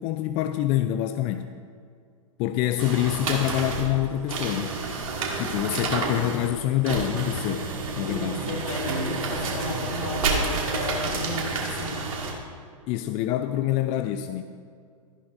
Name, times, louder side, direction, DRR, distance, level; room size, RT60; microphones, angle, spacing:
voice 1, 0.0-1.5 2.4-4.7 5.4-7.7 8.0-8.5 12.9-14.4, left 13 dB, 35° left, 8 dB, 0.4 m, -26 dB
sound 1, 2.8-12.3, right 3 dB, 85° right, 2.4 m, -29 dB
voice 2, 8.1-12.0, left 2 dB, 70° left, -2 dB, 2.8 m, -33 dB
14.0 x 11.0 x 2.7 m, 2.3 s
hypercardioid pair, 130°, 17 cm